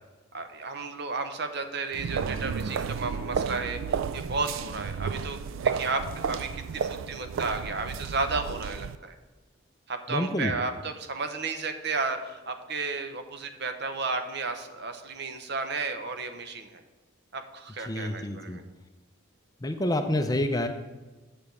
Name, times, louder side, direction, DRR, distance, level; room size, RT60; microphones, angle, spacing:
voice 1, 0.3-5.4 5.7-9.1 9.9-16.8 17.3-18.6, right 4 dB, 50° right, 7 dB, 0.8 m, -33 dB
sound 1, 1.9-9.0, right 6 dB, 70° right, 0.3 m, -32 dB
voice 2, 10.1-10.5 17.8-18.6 19.6-20.7, left 1 dB, 15° left, 6 dB, 0.5 m, -28 dB
7.7 x 5.0 x 7.0 m, 1.2 s
head